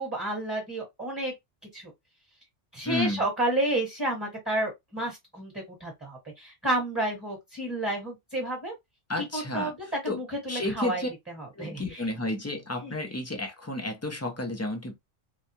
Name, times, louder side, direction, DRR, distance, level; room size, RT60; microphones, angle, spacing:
voice 1, 0.0-1.3 1.7-1.9 2.7-8.7 9.2-9.8 10.0-12.1 12.8-13.0, right 1 dB, 10° right, 1.2 m, -31 dB
voice 2, 2.8-3.2 9.1-9.7 10.1-10.2 10.5-11.1 11.5-15.0, left 2 dB, 25° left, 0.3 m, -31 dB
3.3 x 2.3 x 2.7 m
omnidirectional pair, 1.2 m